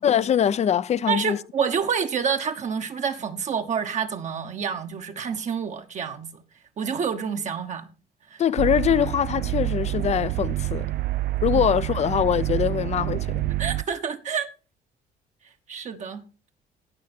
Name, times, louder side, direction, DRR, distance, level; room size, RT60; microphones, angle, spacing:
voice 1, 0.0-1.4 8.4-10.9 11.4-13.5, left 9 dB, 40° left, 0.6 m, -23 dB
voice 2, 1.1-6.4 6.8-7.9 8.3-8.4 13.6-14.5 15.7-16.2, right 6 dB, 45° right, 1.1 m, -28 dB
sound 1, 8.6-13.8, right 17 dB, 65° right, 0.5 m, -27 dB
16.5 x 6.4 x 4.3 m
cardioid pair, 110°, 17 cm